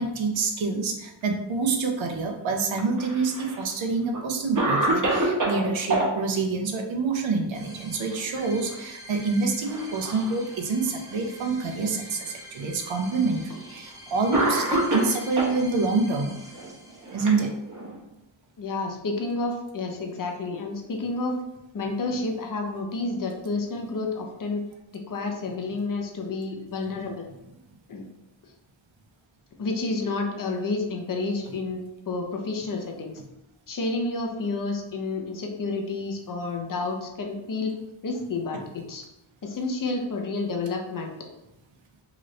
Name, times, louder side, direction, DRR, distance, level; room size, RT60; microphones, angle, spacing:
voice 1, 0.0-16.4 17.1-17.5, right 4 dB, 70° right, 3 dB, 0.6 m, -27 dB
Cough, 2.7-3.6 4.1-4.2 4.6-6.1 8.0-8.4 8.7-8.8 9.6-10.3 11.1-11.2 12.3-12.4 13.5-13.7 14.3-15.6 16.5-18.0, right 2 dB, 40° right, 0.9 m, -26 dB
sound 1, 7.5-17.5, equal, 5° right, 0.6 m, -46 dB
voice 2, 18.6-21.4 21.7-24.7 24.9-27.3 27.9-28.0 29.6-33.2 33.7-37.7 38.0-39.0 39.4-41.2, left 3 dB, 45° left, 2 dB, 0.6 m, -30 dB
3.0 x 2.5 x 3.1 m, 0.89 s
wide cardioid pair, 60°, 47 cm